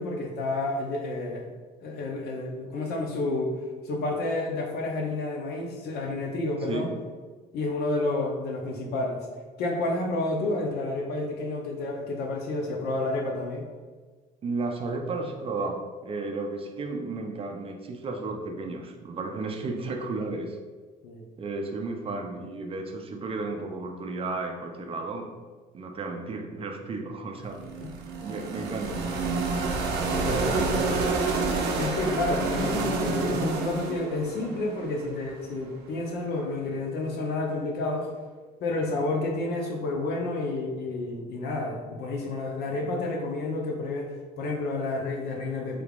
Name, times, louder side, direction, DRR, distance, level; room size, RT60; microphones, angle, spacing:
voice 1, 0.0-1.5 1.8-3.5 3.8-6.9 7.5-9.2 9.6-13.7 21.0-21.3 27.8-27.9 30.1-30.9 31.7-38.1 38.6-44.1 44.4-45.8, left 2 dB, 70° left, 1 dB, 0.7 m, -30 dB
voice 2, 14.4-20.6 21.4-25.3 25.7-27.6 28.2-29.0 30.3-31.1, right 3 dB, 35° right, 3 dB, 0.4 m, -33 dB
sound 1, 27.5-35.5, right 3 dB, 80° right, 0.6 m, -28 dB
3.4 x 3.3 x 2.4 m, 1.4 s
cardioid pair, 110°, 17 cm